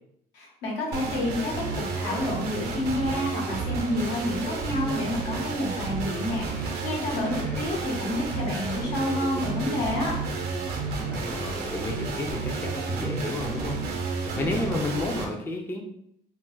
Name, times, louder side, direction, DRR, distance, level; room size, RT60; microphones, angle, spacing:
voice 1, 0.3-10.1, left 1 dB, 80° left, -2 dB, 1.0 m, -29 dB
sound 1, 0.9-15.2, right 3 dB, 70° right, 0.7 m, -31 dB
voice 2, 7.3-7.8 11.1-13.8 14.2-15.8, left 2 dB, 15° left, 1 dB, 0.4 m, -32 dB
2.4 x 2.0 x 3.8 m, 0.73 s
cardioid pair, 110°, 17 cm